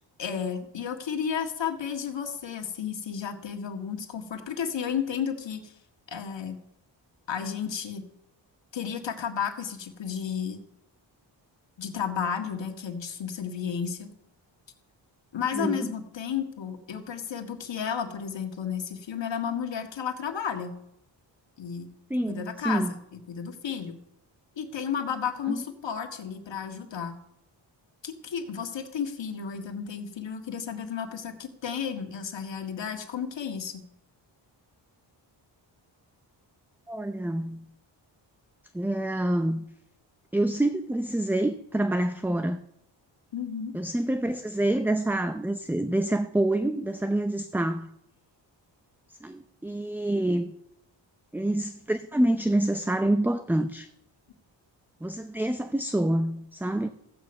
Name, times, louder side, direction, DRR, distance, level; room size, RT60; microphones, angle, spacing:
voice 1, 0.2-5.7 6.1-6.6 7.3-8.0 8.7-10.6 11.8-14.1 15.3-20.8 21.6-21.9 22.3-24.0 24.6-27.2 28.0-33.8 43.3-43.7, left 7 dB, 70° left, 1.8 m, -32 dB
voice 2, 15.5-15.9 22.1-22.9 25.5-25.6 36.9-37.7 38.7-39.6 40.3-42.6 43.7-47.9 49.2-50.5 51.3-53.9 55.0-56.9, right 1 dB, 5° right, 0.6 m, -27 dB
15.0 x 8.6 x 5.4 m
cardioid pair, 70°, 46 cm